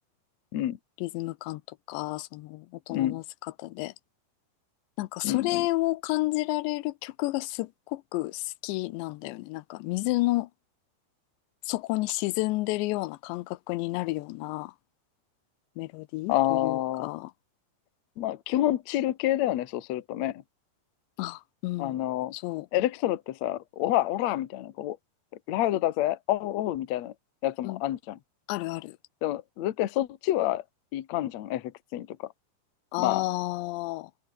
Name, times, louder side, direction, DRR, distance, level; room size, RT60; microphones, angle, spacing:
voice 1, 1.0-3.2 3.6-3.9 5.0-10.5 11.7-14.7 15.8-17.3 21.2-22.0 22.3-22.7 27.6-27.8 28.5-29.0 32.9-34.1, left 20 dB, 85° left, 3.0 m, -31 dB
voice 2, 2.9-3.2 5.2-5.7 16.3-17.1 18.2-20.4 21.8-22.3 22.7-25.0 25.5-27.1 27.4-28.2 29.2-30.6 30.9-32.3 33.0-33.2, left 14 dB, 70° left, 1.7 m, -28 dB
omnidirectional pair, 5.0 m